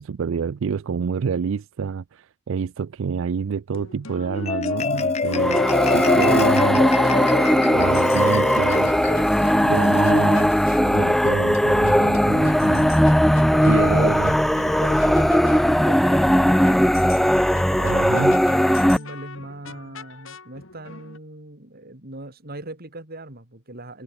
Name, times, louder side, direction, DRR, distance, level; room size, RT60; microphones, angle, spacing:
voice 1, 0.0-5.6 5.9-6.8 7.7-9.1 9.7-12.9 13.7-14.3 17.8-18.4, right 6 dB, 65° right, 0.4 m, -27 dB
sound 1, 3.7-21.2, left 4 dB, 65° left, 3.4 m, -42 dB
Marimba xylophone, 4.2-10.8, left 4 dB, 30° left, 0.7 m, -26 dB
sound 2, 5.3-19.0, equal, ahead, 0.3 m, -18 dB
voice 2, 5.3-6.8 7.1-7.8 9.4-10.0 11.6-12.5 13.3-14.0 14.6-18.3 18.6-24.0, right 1 dB, 45° right, 4.2 m, -38 dB
head